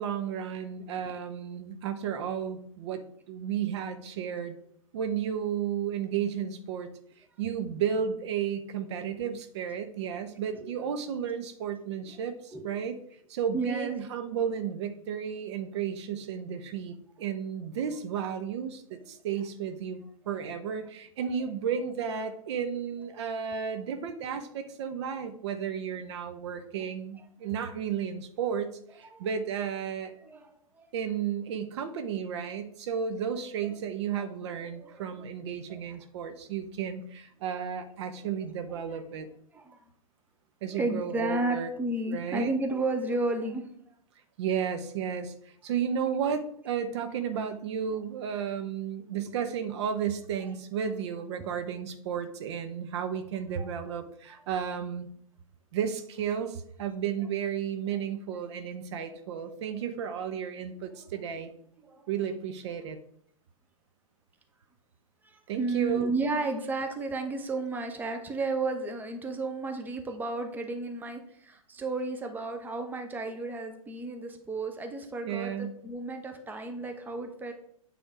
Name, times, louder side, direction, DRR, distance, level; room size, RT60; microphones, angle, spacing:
voice 1, 0.0-3.0 3.3-4.5 4.9-6.9 7.4-13.0 13.3-30.1 30.9-39.3 40.6-41.7 42.1-42.5 44.4-55.1 55.7-61.5 62.1-63.0 65.5-66.1 75.2-75.7, right 8 dB, 50° right, 8 dB, 0.7 m, -33 dB
voice 2, 13.5-13.9 29.1-29.3 30.2-30.9 33.6-33.7 34.8-36.0 38.7-39.0 39.5-39.8 40.7-43.7 53.6-53.7 61.8-62.1 65.2-77.5, right 2 dB, 10° right, 5 dB, 0.8 m, -33 dB
8.6 x 3.5 x 4.9 m, 0.67 s
figure-of-eight pair, 105°, 18 cm